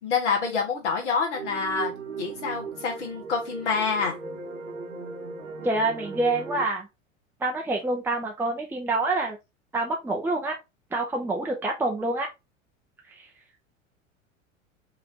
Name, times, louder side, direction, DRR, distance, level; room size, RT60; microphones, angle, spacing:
voice 1, 0.0-1.9 2.2-4.2, left 5 dB, 65° left, 2.1 m, -27 dB
sound 1, 1.3-6.7, right 4 dB, 75° right, 1.2 m, -37 dB
voice 2, 5.6-6.9 7.4-9.4 9.7-10.6 10.9-12.3, right 2 dB, 5° right, 0.8 m, -26 dB
5.2 x 3.1 x 2.9 m
figure-of-eight pair, 85°, 39 cm